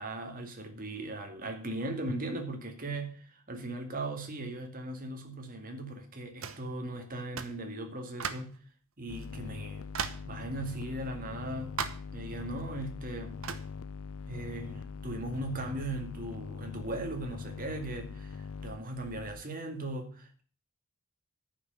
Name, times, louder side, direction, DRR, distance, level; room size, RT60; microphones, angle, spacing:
voice 1, 0.0-8.6 9.0-9.9 10.2-11.8 12.1-13.3 14.3-20.4, right 2 dB, 40° right, 2.1 m, -38 dB
sound 1, 6.4-6.7 7.4-7.6 8.2-8.6 9.2-9.3 9.9-10.3 11.8-12.1 13.4-13.7, right 6 dB, 65° right, 1.0 m, -36 dB
sound 2, 9.1-19.4, left 5 dB, 70° left, 0.5 m, -42 dB
10.0 x 6.0 x 8.7 m
head